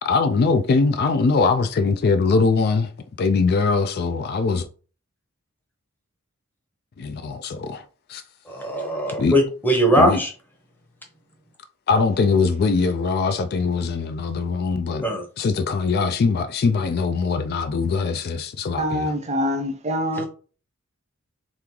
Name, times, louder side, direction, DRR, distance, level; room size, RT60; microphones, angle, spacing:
voice 1, 0.0-2.9 3.2-4.6 7.0-7.8 8.1-8.2 9.2-9.3 10.0-10.2 11.9-15.0 15.4-19.1, left 4 dB, 45° left, 0.3 m, -21 dB
voice 2, 8.5-10.3 15.0-15.2 20.1-20.3, equal, 10° left, 0.8 m, -20 dB
voice 3, 18.8-20.3, equal, 30° right, 0.6 m, -25 dB
3.4 x 3.1 x 3.7 m
head